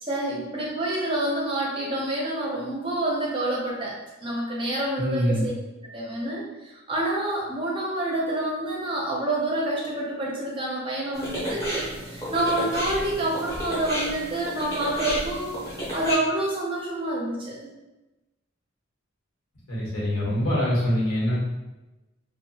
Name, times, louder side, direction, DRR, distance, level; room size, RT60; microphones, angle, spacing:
voice 1, 0.0-5.5 5.9-15.6 15.9-17.5, right 1 dB, 25° right, -3 dB, 0.5 m, -28 dB
voice 2, 5.0-5.5 19.7-21.4, equal, 85° left, -6 dB, 1.1 m, -24 dB
sound 1, 11.1-16.2, equal, 15° left, 0.7 m, -32 dB
2.7 x 2.2 x 2.7 m, 1.0 s
head